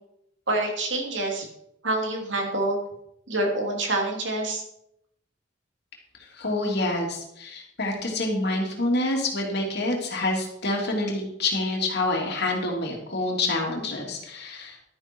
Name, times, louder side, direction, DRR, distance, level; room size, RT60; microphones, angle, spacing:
voice 1, 0.5-1.5 1.8-2.8 3.3-4.6, right 2 dB, 65° right, 1 dB, 3.1 m, -26 dB
voice 2, 6.2-14.8, left 2 dB, 55° left, 0 dB, 3.0 m, -27 dB
12.0 x 10.0 x 4.6 m, 0.76 s
head